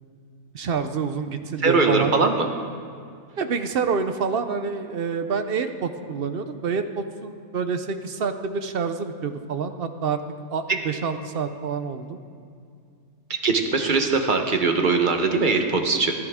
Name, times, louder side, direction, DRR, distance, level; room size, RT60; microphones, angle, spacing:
voice 1, 0.5-2.1 3.4-10.2 10.5-12.2, right 5 dB, 55° right, 9 dB, 0.7 m, -27 dB
voice 2, 1.6-2.3 10.7-10.8 13.4-16.1, right 4 dB, 40° right, 4 dB, 1.0 m, -21 dB
14.0 x 13.0 x 3.6 m, 2.3 s
omnidirectional pair, 1.5 m